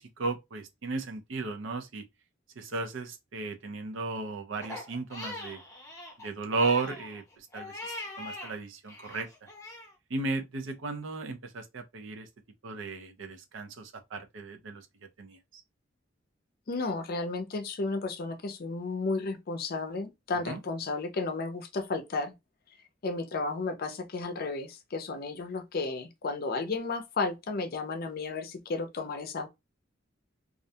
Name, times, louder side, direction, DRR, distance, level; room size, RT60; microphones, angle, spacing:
voice 1, 0.0-2.1 2.6-5.6 6.2-9.5 10.1-12.3 12.6-14.9 15.2-15.6 20.4-20.6, right 3 dB, 70° right, 0.5 m, -35 dB
Crying sobbing, 4.6-8.5 8.9-9.9, left 2 dB, 15° left, 0.7 m, -42 dB
voice 2, 16.7-22.3 23.0-29.5, left 3 dB, 50° left, 0.5 m, -33 dB
2.4 x 2.2 x 2.7 m
head